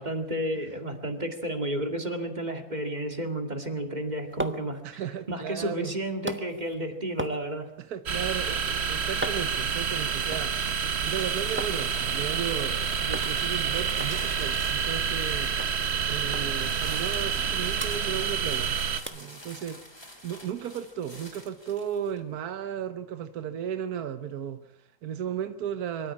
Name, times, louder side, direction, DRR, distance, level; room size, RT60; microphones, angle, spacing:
voice 1, 0.0-7.7, right 1 dB, 30° right, 2.3 m, -32 dB
sound 1, 3.9-11.8 12.1-12.8 13.1-13.3 13.6-13.7 14.0-15.3 15.6-15.7 16.3-16.5 16.8-17.5 17.8-18.7 19.1-19.3 19.8-19.9, right 1 dB, 10° right, 1.1 m, -39 dB
voice 2, 4.8-5.9 7.8-15.5 16.1-18.8 19.1-19.8 20.2-26.1, right 9 dB, 80° right, 1.5 m, -35 dB
sound 2, 8.1-19.0, right 7 dB, 50° right, 1.2 m, -28 dB
sound 3, 11.1-15.6 16.5-22.2, left 1 dB, 15° left, 3.5 m, -47 dB
24.5 x 13.0 x 8.6 m
omnidirectional pair, 1.6 m